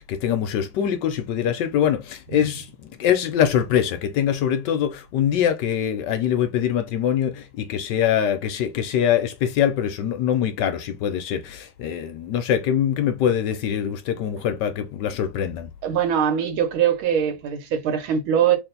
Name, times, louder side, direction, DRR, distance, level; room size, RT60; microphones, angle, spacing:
voice 1, 0.0-15.7, left 9 dB, 75° left, 1.1 m, -23 dB
voice 2, 15.8-18.6, right 8 dB, 85° right, 1.8 m, -22 dB
3.4 x 2.6 x 3.8 m
omnidirectional pair, 2.2 m